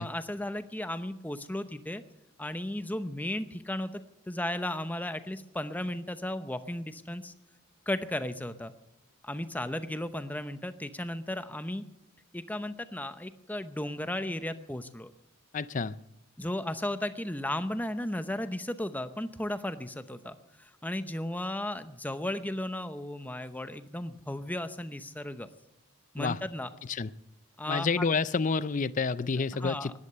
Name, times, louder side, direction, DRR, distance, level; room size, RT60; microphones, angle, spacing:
voice 1, 0.0-2.0 2.4-7.3 7.9-8.7 9.2-11.8 12.3-15.1 16.4-25.5 26.1-26.7 27.6-28.0 29.6-29.9, left 1 dB, 10° left, 11 dB, 0.8 m, -35 dB
voice 2, 15.5-16.0 26.2-26.4 26.9-27.1 27.7-29.9, left 4 dB, 35° left, 17 dB, 0.5 m, -29 dB
18.0 x 11.5 x 6.8 m, 0.86 s
head